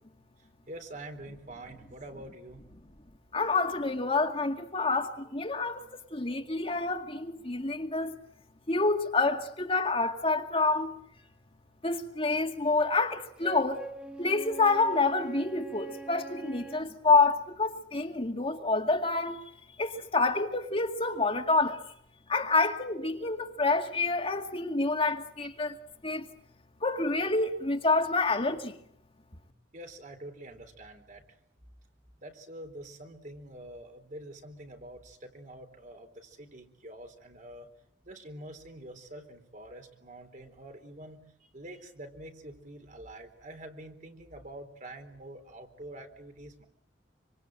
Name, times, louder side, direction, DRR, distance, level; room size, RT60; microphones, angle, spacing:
voice 1, 0.7-2.7 29.7-31.4 32.2-37.7 38.0-46.6, right 1 dB, 45° right, 3.9 m, -46 dB
voice 2, 3.3-8.2 8.7-10.9 11.8-13.8 14.2-19.4 19.8-21.8 22.3-25.8 26.0-26.3 26.8-28.8, left 3 dB, 30° left, 2.1 m, -28 dB
Wind instrument woodwind instrument, 13.4-16.9, right 3 dB, 5° right, 2.3 m, -43 dB
26.5 x 25.5 x 7.8 m
head